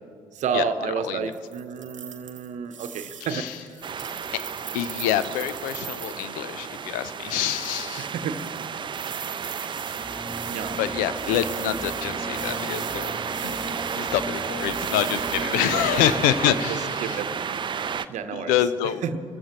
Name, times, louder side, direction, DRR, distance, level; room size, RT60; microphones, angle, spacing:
voice 1, 0.3-3.8 8.0-8.8 10.5-10.8 15.6-17.3 18.1-18.6 19.0-19.2, right 6 dB, 50° right, 10 dB, 1.0 m, -31 dB
sound 1, 1.3-6.3 7.2-16.3, right 7 dB, 85° right, 0.7 m, -41 dB
sound 2, 3.8-18.1, right 7 dB, 30° right, 0.5 m, -32 dB
voice 2, 4.7-8.1 10.8-13.1 13.4-17.2 18.3-19.0, left 11 dB, 60° left, 15 dB, 0.6 m, -26 dB
sound 3, 10.0-16.5, right 1 dB, 15° right, 2.1 m, -37 dB
30.0 x 14.5 x 3.0 m, 2.4 s
figure-of-eight pair, 50°, 16 cm